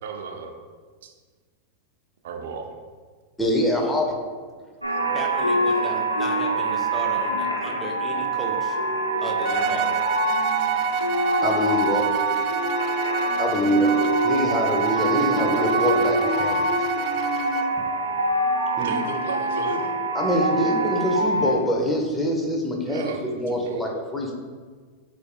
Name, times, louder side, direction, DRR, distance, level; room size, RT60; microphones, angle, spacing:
voice 1, 0.0-0.5 2.2-2.7 4.9-5.0 18.8-19.9 22.9-23.8, right 5 dB, 55° right, 3 dB, 0.9 m, -35 dB
voice 2, 3.4-4.1 11.4-12.4 13.4-16.7 18.8-18.9 20.1-24.3, equal, 10° left, 0 dB, 1.2 m, -24 dB
sound 1, 4.8-21.5, right 2 dB, 90° right, 1.0 m, -25 dB
voice 3, 5.1-8.8 9.2-10.0, right 1 dB, 10° right, -1 dB, 1.3 m, -34 dB
Bowed string instrument, 9.4-17.8, right 9 dB, 40° right, 0.4 m, -30 dB
13.0 x 5.0 x 2.3 m, 1.5 s
figure-of-eight pair, 90°, 0 cm